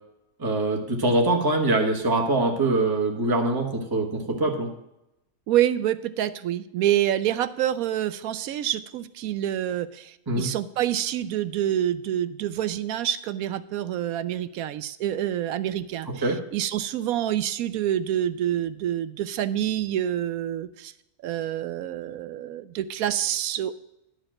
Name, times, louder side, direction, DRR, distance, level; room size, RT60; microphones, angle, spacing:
voice 1, 0.4-4.7 10.3-10.5 16.1-16.4, right 2 dB, 15° right, 1 dB, 1.2 m, -23 dB
voice 2, 5.5-20.9 21.2-23.7, right 11 dB, 75° right, 14 dB, 1.0 m, -27 dB
11.5 x 4.7 x 7.5 m, 0.86 s
omnidirectional pair, 1.6 m